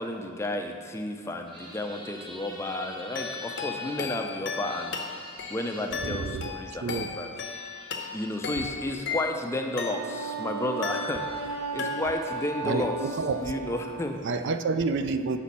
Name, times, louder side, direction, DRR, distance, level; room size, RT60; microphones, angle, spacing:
voice 1, 0.0-5.0 5.5-7.3 8.1-13.0 13.4-14.2, left 1 dB, 10° left, 3 dB, 0.4 m, -32 dB
sound 1, 1.5-4.0 4.6-5.9 6.9-7.0 7.3-8.3, right 1 dB, 20° right, 1.1 m, -46 dB
sound 2, 3.1-10.4 10.8-11.5 11.8-12.4, left 5 dB, 55° left, 0.6 m, -36 dB
voice 2, 6.0-6.5 6.8-7.1 8.6-8.7 12.6-13.6 14.2-15.4, right 4 dB, 55° right, 9 dB, 0.3 m, -29 dB
Wind instrument woodwind instrument, 9.8-14.1, right 4 dB, 85° right, 0.9 m, -35 dB
8.2 x 6.1 x 4.2 m, 2.2 s
head